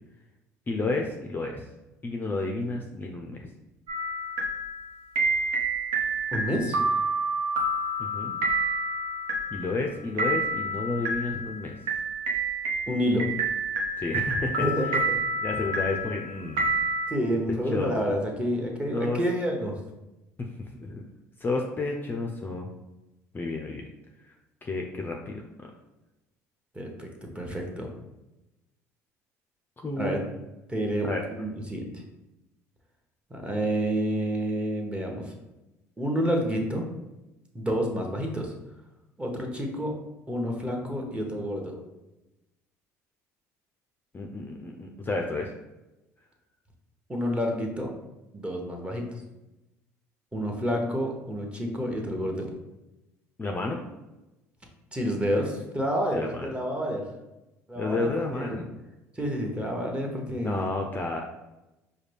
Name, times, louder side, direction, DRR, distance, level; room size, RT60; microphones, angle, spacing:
voice 1, 0.7-1.7 2.0-3.5 8.0-8.4 9.5-11.8 14.0-14.9 15.4-16.6 17.7-18.2 18.9-19.2 20.4-21.0 21.4-22.7 23.3-23.8 24.2-24.3 24.6-25.7 29.8-30.2 31.0-31.2 44.1-45.5 53.4-53.8 56.1-56.5 57.8-58.7 60.4-61.2, left 2 dB, 25° left, 1 dB, 0.5 m, -31 dB
sound 1, 3.9-17.1, right 2 dB, 70° right, 0.8 m, -29 dB
voice 2, 6.3-6.8 12.9-13.3 14.6-15.2 17.1-19.7 26.7-27.1 27.3-27.9 30.0-30.2 30.7-32.0 33.3-35.4 36.0-36.9 37.5-38.5 39.2-39.9 40.3-41.8 47.1-47.9 48.3-49.0 50.3-52.5 54.9-57.1 57.7-58.6 59.1-60.7, equal, 15° right, 1 dB, 1.0 m, -29 dB
4.8 x 2.2 x 3.3 m, 0.99 s
hypercardioid pair, 65°, 8 cm